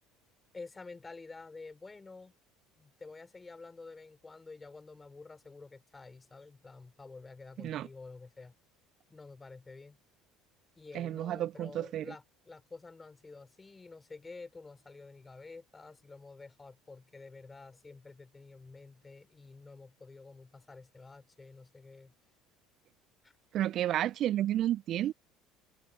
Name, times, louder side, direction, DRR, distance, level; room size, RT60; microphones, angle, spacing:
voice 1, 0.5-2.4 2.8-8.5 9.1-10.0 10.8-22.1 23.2-23.3, left 3 dB, 20° left, 3.9 m, -50 dB
voice 2, 10.9-12.1 23.5-25.1, right 12 dB, 55° right, 0.3 m, -31 dB
hypercardioid pair, 65°, 0 cm